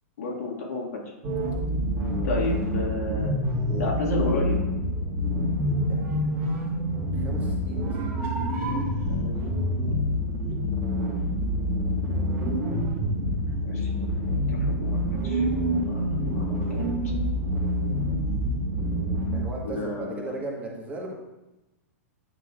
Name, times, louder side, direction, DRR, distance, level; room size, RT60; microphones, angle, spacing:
voice 1, 0.2-1.0 2.2-3.4 3.7-4.6 9.1-10.0 13.6-16.9 19.6-20.3, left 3 dB, 75° left, -3 dB, 2.0 m, -33 dB
sound 1, 1.2-19.4, equal, 35° right, 1.8 m, -27 dB
voice 2, 5.7-6.6 6.9-8.0 19.3-21.1, right 2 dB, 15° right, -2 dB, 1.4 m, -37 dB
9.4 x 6.0 x 2.5 m, 0.99 s
hypercardioid pair, 130°, 8 cm